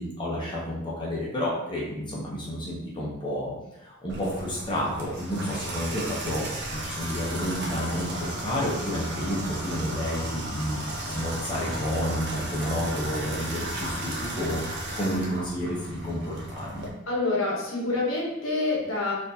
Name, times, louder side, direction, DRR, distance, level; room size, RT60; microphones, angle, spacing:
voice 1, 0.0-3.5 3.8-16.9, equal, 20° left, -6 dB, 0.7 m, -30 dB
Water tap faucet / Bathtub (filling or washing), 4.1-16.9, right 1 dB, 50° right, 0.6 m, -34 dB
voice 2, 17.1-19.1, left 2 dB, 60° left, -3 dB, 1.1 m, -27 dB
4.2 x 2.5 x 2.7 m, 0.91 s
head